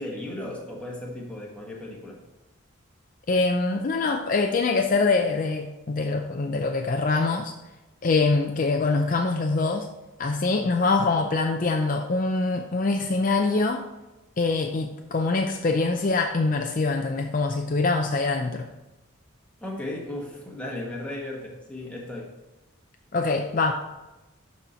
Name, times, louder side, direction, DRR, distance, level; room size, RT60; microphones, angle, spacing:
voice 1, 0.0-2.2 19.6-22.3, left 1 dB, 5° left, -3 dB, 1.5 m, -35 dB
voice 2, 3.3-7.5 8.0-9.9 10.2-13.8 14.4-18.7 23.1-23.7, left 3 dB, 40° left, 4 dB, 0.4 m, -24 dB
11.5 x 4.2 x 4.3 m, 1.0 s
head